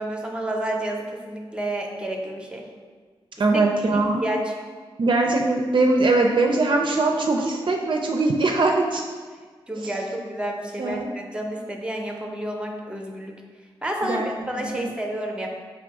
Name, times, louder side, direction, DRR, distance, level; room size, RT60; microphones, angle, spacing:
voice 1, 0.0-2.7 3.9-4.5 9.7-13.4 13.8-15.5, right 1 dB, 10° right, 2 dB, 0.6 m, -30 dB
voice 2, 3.4-4.2 5.0-9.0 9.8-9.9 10.8-11.1 14.0-14.3 14.6-15.0, right 2 dB, 55° right, 1 dB, 0.4 m, -21 dB
3.5 x 2.5 x 4.6 m, 1.5 s
cardioid pair, 45°, 10 cm